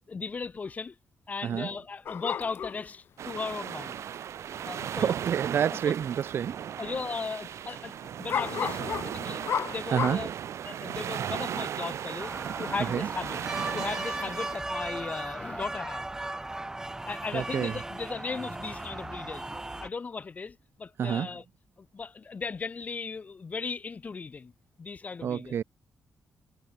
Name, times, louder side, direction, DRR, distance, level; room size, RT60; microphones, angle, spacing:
voice 1, 0.1-0.9 1.3-4.0 4.6-5.1 6.8-10.3 10.6-13.4 13.7-16.1 17.0-19.5 19.8-21.4 21.8-24.5 24.8-25.6, left 4 dB, 30° left, 0.8 m, -37 dB
sound 1, 2.1-2.9 4.8-4.9 5.3-5.4 6.0-6.2 6.5-6.6 8.3-10.2, left 8 dB, 55° left, 0.4 m, -32 dB
sound 2, 3.2-14.6, right 9 dB, 70° right, 1.5 m, -36 dB
voice 2, 5.0-6.7 9.9-10.2 12.9-13.1 17.3-17.7 21.0-21.3 25.2-25.6, right 8 dB, 50° right, 0.4 m, -28 dB
sound 3, 12.2-19.9, right 2 dB, 10° right, 1.5 m, -37 dB
wide cardioid pair, 155°, 5 cm